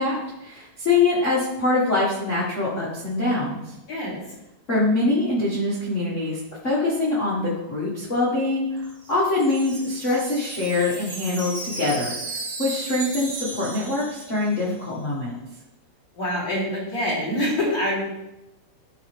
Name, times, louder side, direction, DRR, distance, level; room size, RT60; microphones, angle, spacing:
voice 1, 0.0-3.6 4.7-12.1 12.6-15.3, left 2 dB, 85° left, -7 dB, 0.6 m, -24 dB
voice 2, 3.9-4.2 16.1-18.0, left 1 dB, 25° left, -7 dB, 3.1 m, -25 dB
Wind chime, 8.8-14.8, right 2 dB, 65° right, 1.1 m, -35 dB
12.0 x 4.3 x 3.4 m, 0.95 s
omnidirectional pair, 4.2 m